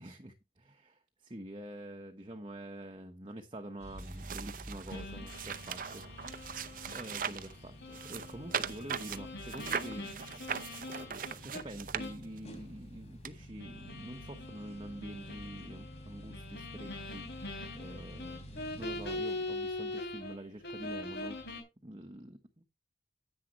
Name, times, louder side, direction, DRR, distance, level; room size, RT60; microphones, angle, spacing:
voice 1, 0.0-6.3 6.9-10.1 11.1-21.4 21.8-22.6, right 1 dB, 30° right, 1.1 m, -46 dB
sound 1, 3.8-19.2, equal, 35° left, 3.2 m, -50 dB
sound 2, 4.0-7.5 7.9-12.5 13.2-13.3, right 7 dB, 50° right, 0.7 m, -39 dB
sound 3, 4.9-11.6 12.0-12.3 12.6-12.7 13.6-20.3 20.6-21.6, left 2 dB, 65° left, 3.6 m, -43 dB
10.0 x 9.1 x 3.1 m
head